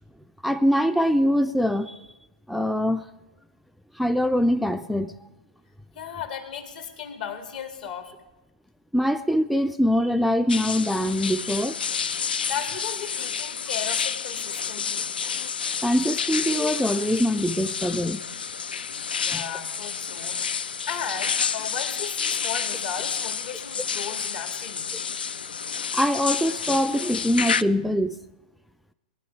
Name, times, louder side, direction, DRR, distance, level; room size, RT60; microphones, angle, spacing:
voice 1, 0.4-2.0 2.5-3.0 4.0-5.1 8.9-11.8 15.8-18.2 19.3-19.4 25.9-28.2, equal, ahead, 10 dB, 0.3 m, -23 dB
voice 2, 6.0-8.1 12.5-15.1 19.2-24.9, left 7 dB, 65° left, 5 dB, 2.1 m, -35 dB
sound 1, 10.5-27.6, left 6 dB, 85° left, 0.3 m, -29 dB
19.0 x 11.0 x 4.4 m, 1.1 s
hypercardioid pair, 115°, 5 cm